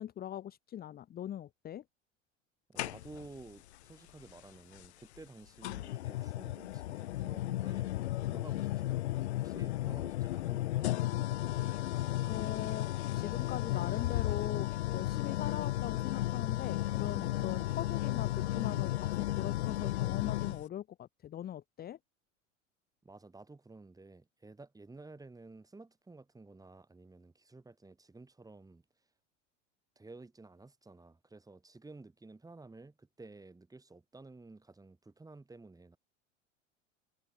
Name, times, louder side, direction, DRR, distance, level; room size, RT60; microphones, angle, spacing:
voice 1, 0.0-1.8 12.3-22.0, left 11 dB, 25° left, 1.2 m, -41 dB
voice 2, 2.7-7.9 8.3-11.2 23.0-28.8 30.0-36.0, right 3 dB, 10° right, 5.5 m, -53 dB
sound 1, 2.8-3.4 4.8-4.9 5.6-20.6, left 15 dB, 60° left, 1.6 m, -34 dB
figure-of-eight pair, 80°, 38 cm